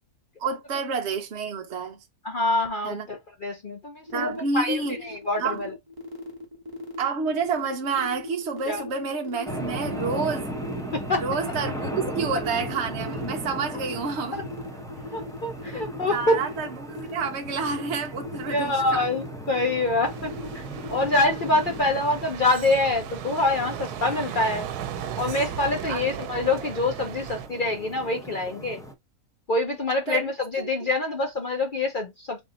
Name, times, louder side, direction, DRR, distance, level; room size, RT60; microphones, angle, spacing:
voice 1, 0.4-2.0 2.8-3.1 4.1-5.0 5.4-5.6 7.0-10.5 11.2-14.4 16.1-19.0 25.9-26.0 30.1-30.3 30.6-30.7, right 5 dB, 55° right, 0.9 m, -29 dB
voice 2, 2.2-5.7 8.7-8.8 10.9-11.2 14.3-14.4 15.1-16.4 18.5-20.6 20.9-24.7 25.2-28.8 29.5-32.4, left 2 dB, 45° left, 0.7 m, -26 dB
sound 1, 4.1-21.8, left 2 dB, 15° right, 1.1 m, -39 dB
sound 2, 9.5-28.9, right 1 dB, 5° left, 0.5 m, -37 dB
sound 3, 20.0-27.5, right 11 dB, 90° right, 1.1 m, -37 dB
3.5 x 2.7 x 3.8 m
omnidirectional pair, 1.6 m